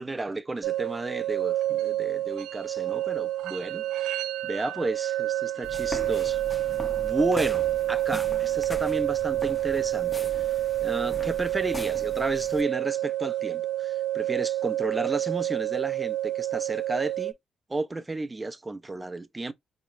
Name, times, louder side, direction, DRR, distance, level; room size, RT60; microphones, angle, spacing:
voice 1, 0.0-6.4 7.0-10.5 10.8-17.3 17.7-19.5, right 2 dB, 20° right, 0.5 m, -32 dB
sound 1, 0.6-17.3, right 14 dB, 85° right, 0.3 m, -28 dB
sound 2, 5.6-12.6, left 1 dB, 15° left, 0.7 m, -40 dB
4.2 x 2.9 x 2.6 m
cardioid pair, 90°, 0 cm